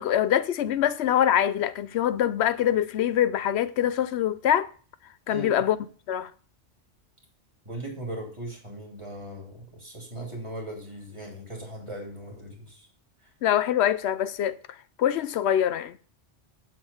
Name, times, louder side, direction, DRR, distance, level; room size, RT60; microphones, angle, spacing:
voice 1, 0.0-4.7 5.3-5.8 6.1-6.3 13.4-14.6 15.0-16.0, left 10 dB, 70° left, 0.8 m, -24 dB
voice 2, 5.3-5.6 7.6-12.9, right 1 dB, 25° right, 3.0 m, -38 dB
7.7 x 7.4 x 5.6 m
omnidirectional pair, 1.2 m